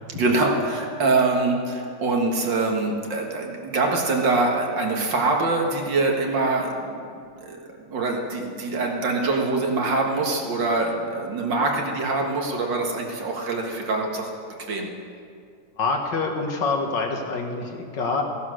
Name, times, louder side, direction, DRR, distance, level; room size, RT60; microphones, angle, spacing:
voice 1, 0.1-7.0 7.4-7.6 7.9-14.3 14.7-14.9, right 3 dB, 75° right, 1 dB, 2.4 m, -24 dB
voice 2, 15.8-18.2, left 4 dB, 75° left, 2 dB, 2.2 m, -26 dB
15.5 x 11.0 x 6.4 m, 2.3 s
omnidirectional pair, 2.0 m